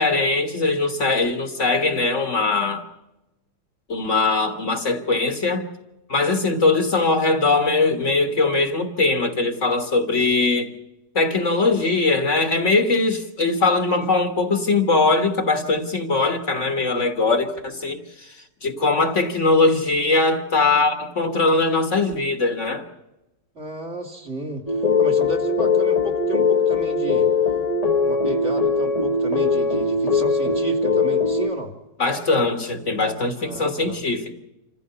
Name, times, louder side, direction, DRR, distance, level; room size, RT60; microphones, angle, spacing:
voice 1, 0.0-2.8 3.9-5.7 6.1-10.7 11.2-22.9 32.0-34.3, left 3 dB, 50° left, 7 dB, 1.8 m, -21 dB
voice 2, 23.5-27.3 28.0-31.7 33.4-34.0, right 2 dB, 45° right, 1 dB, 2.9 m, -32 dB
sound 1, 24.7-31.5, left 4 dB, 25° left, 1.2 m, -20 dB
27.0 x 15.0 x 6.9 m, 0.99 s
omnidirectional pair, 1.7 m